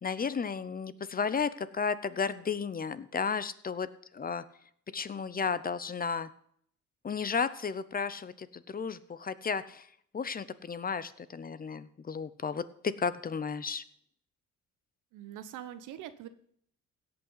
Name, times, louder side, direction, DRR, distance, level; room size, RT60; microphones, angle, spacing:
voice 1, 0.0-4.4 4.9-6.3 7.0-9.9 10.1-13.8, left 5 dB, 30° left, 15 dB, 0.6 m, -33 dB
voice 2, 15.1-16.3, right 11 dB, 90° right, 12 dB, 0.9 m, -43 dB
16.5 x 5.8 x 5.6 m, 0.66 s
cardioid pair, 90°, 30 cm